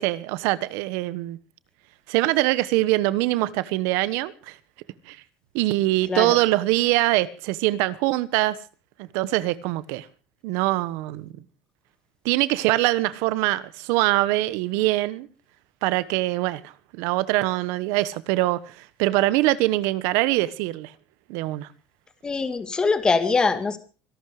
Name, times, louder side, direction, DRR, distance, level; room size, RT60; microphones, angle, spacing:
voice 1, 0.0-1.4 2.1-4.5 5.1-5.2 5.5-8.6 9.0-10.1 10.4-11.3 12.2-15.3 15.8-16.6 16.9-20.9 21.3-21.7, right 18 dB, 80° right, 1.2 m, -23 dB
voice 2, 22.2-23.8, left 4 dB, 15° left, 2.0 m, -23 dB
24.5 x 12.0 x 4.9 m
cardioid pair, 150°, 5 cm